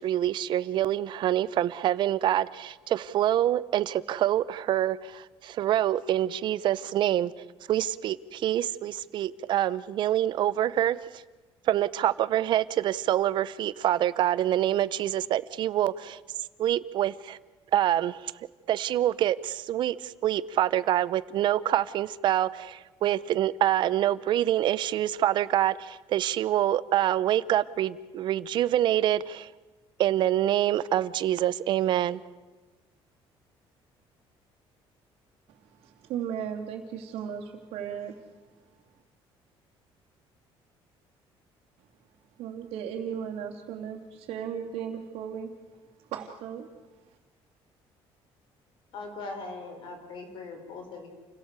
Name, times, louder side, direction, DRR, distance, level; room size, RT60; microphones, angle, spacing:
voice 1, 0.0-7.3 7.7-11.0 11.7-16.2 16.6-17.4 17.7-18.3 18.7-29.5 30.0-32.2, right 12 dB, 50° right, 0.8 m, -26 dB
voice 2, 35.5-38.2 42.4-45.5 46.0-46.7, right 8 dB, 85° right, 3.0 m, -36 dB
voice 3, 48.9-51.1, left 3 dB, 55° left, 5.3 m, -40 dB
29.0 x 17.0 x 8.3 m
cardioid pair, 165°, 10 cm